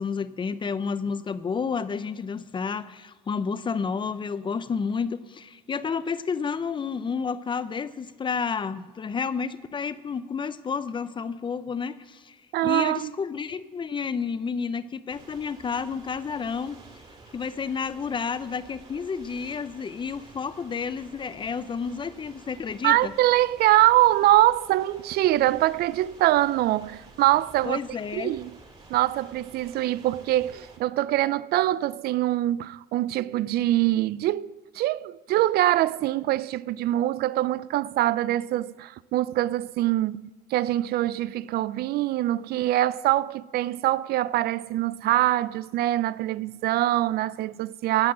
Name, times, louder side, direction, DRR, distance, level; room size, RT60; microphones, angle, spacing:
voice 1, 0.0-12.4 12.6-16.8 17.3-23.1 27.6-28.3, left 5 dB, 30° left, 0.6 m, -30 dB
voice 2, 12.5-13.1 22.8-27.8 28.1-28.5 28.9-48.1, right 15 dB, 70° right, 0.4 m, -24 dB
sound 1, 15.1-30.8, right 3 dB, 30° right, 2.5 m, -51 dB
17.5 x 5.9 x 7.4 m
cardioid pair, 110°, 17 cm